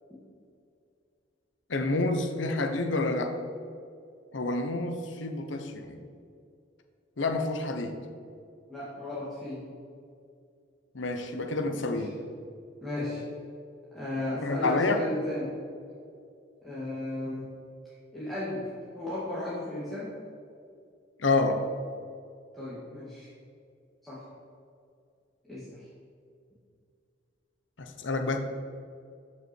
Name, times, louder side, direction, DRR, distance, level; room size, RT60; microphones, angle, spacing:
voice 1, 1.7-3.4 4.3-6.0 7.2-8.0 10.9-12.1 14.4-15.0 21.2-21.6 27.8-28.4, left 2 dB, 70° left, 5 dB, 0.9 m, -28 dB
voice 2, 8.7-9.6 11.7-12.0 12.8-13.2 13.9-15.5 16.6-17.5 18.1-18.7 18.9-20.1 22.5-23.3 24.0-24.2 25.5-25.7, left 1 dB, ahead, -11 dB, 2.1 m, -35 dB
13.0 x 5.8 x 4.5 m, 2.4 s
head